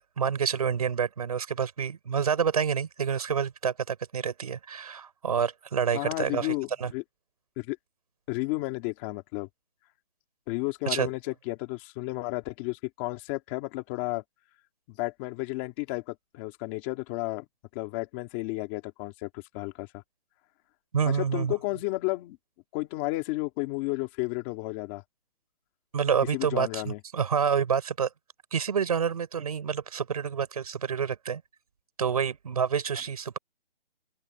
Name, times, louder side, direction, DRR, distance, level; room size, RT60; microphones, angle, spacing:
voice 1, 0.2-6.5 6.8-6.9 10.9-11.1 20.9-21.5 25.9-28.1 28.5-31.4 32.0-33.4, right 7 dB, 40° right, 5.5 m, -28 dB
voice 2, 5.9-7.0 7.6-7.8 8.3-9.5 10.5-14.2 14.9-17.4 17.7-20.0 21.2-22.4 22.7-25.0 26.3-27.0, left 21 dB, 10° left, 2.3 m, -32 dB
open air
hypercardioid pair, 175°, 30 cm